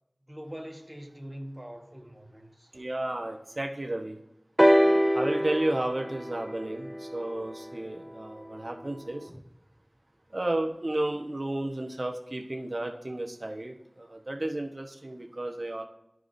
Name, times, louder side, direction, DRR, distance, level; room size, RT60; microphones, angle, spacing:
voice 1, 0.3-2.7, equal, 20° right, 3 dB, 1.3 m, -43 dB
voice 2, 2.7-4.2 5.1-9.3 10.3-15.8, right 1 dB, 55° right, 3 dB, 1.1 m, -32 dB
sound 1, 4.6-8.4 9.3-9.4, equal, ahead, 0.3 m, -25 dB
13.0 x 4.7 x 2.6 m, 0.86 s
wide cardioid pair, 45°, 0 cm